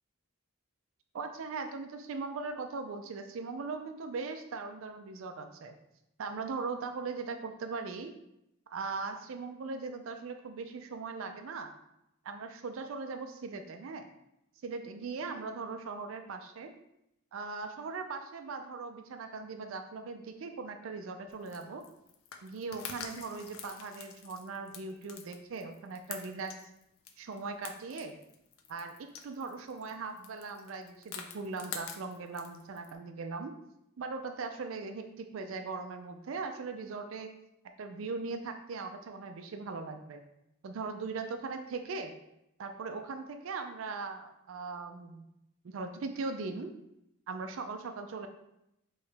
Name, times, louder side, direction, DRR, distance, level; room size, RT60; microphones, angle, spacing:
voice 1, 1.1-5.7 6.2-8.1 8.7-11.7 12.2-14.0 14.6-16.7 17.3-21.8 22.4-26.5 27.2-28.1 28.7-28.9 29.2-33.5 34.0-37.3 37.8-40.2 40.6-42.1 42.6-45.2 45.6-46.7 47.3-48.3, right 4 dB, 65° right, 6 dB, 0.4 m, -39 dB
sound 1, 21.3-33.0, left 7 dB, 70° left, 0.5 m, -47 dB
4.6 x 3.1 x 3.3 m, 0.84 s
head